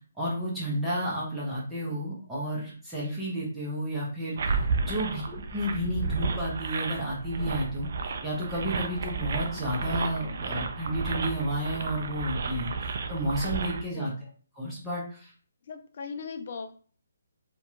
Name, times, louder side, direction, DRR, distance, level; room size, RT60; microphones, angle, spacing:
voice 1, 0.2-14.1 14.6-15.3, equal, 5° right, -7 dB, 0.7 m, -32 dB
sound 1, 4.4-13.8, right 4 dB, 55° right, 0.3 m, -32 dB
voice 2, 4.9-5.3 13.9-14.2 15.6-16.7, left 5 dB, 50° left, 7 dB, 0.3 m, -39 dB
2.7 x 2.2 x 2.4 m, 0.42 s
hypercardioid pair, 150°, 0 cm